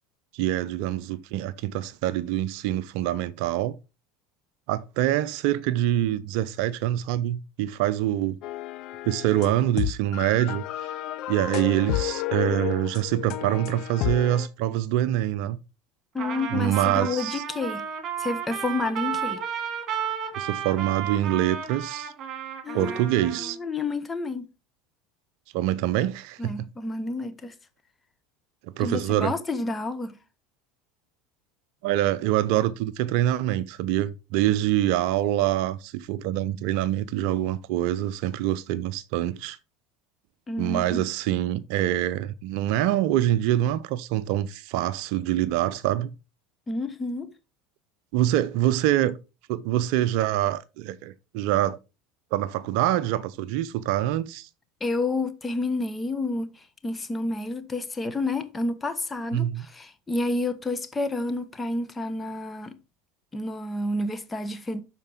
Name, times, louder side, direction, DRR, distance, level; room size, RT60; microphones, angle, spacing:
voice 1, 0.3-3.8 4.7-8.4 9.0-10.6 11.3-15.6 16.5-17.4 20.4-22.1 22.7-23.6 25.5-26.7 28.6-29.3 31.8-39.6 40.6-46.1 48.1-49.2 49.5-51.8 52.3-54.5 59.3-59.6, right 13 dB, 60° right, 0.5 m, -25 dB
sound 1, 8.4-14.5, left 14 dB, 55° left, 0.7 m, -31 dB
voice 2, 16.1-17.8 18.2-19.4 22.6-24.5 26.4-27.5 28.8-30.2 40.5-41.0 46.7-47.3 54.8-62.8 63.3-64.8, left 2 dB, 20° left, 1.1 m, -30 dB
Trumpet, 16.2-23.5, right 8 dB, 40° right, 2.1 m, -33 dB
12.0 x 4.6 x 3.4 m
hypercardioid pair, 75°, 0 cm